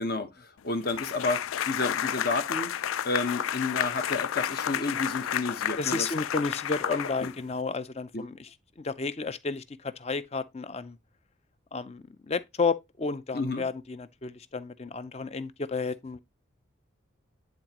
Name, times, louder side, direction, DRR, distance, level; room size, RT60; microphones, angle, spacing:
voice 1, 0.0-2.7 3.0-6.1 6.9-7.3 8.1-8.2 13.3-13.6, left 3 dB, 50° left, 1.0 m, -31 dB
sound 1, 0.9-7.6, left 10 dB, 90° left, 0.4 m, -31 dB
voice 2, 5.8-8.4 8.8-11.0 11.7-16.2, left 4 dB, 30° left, 0.5 m, -32 dB
10.0 x 3.9 x 2.9 m
head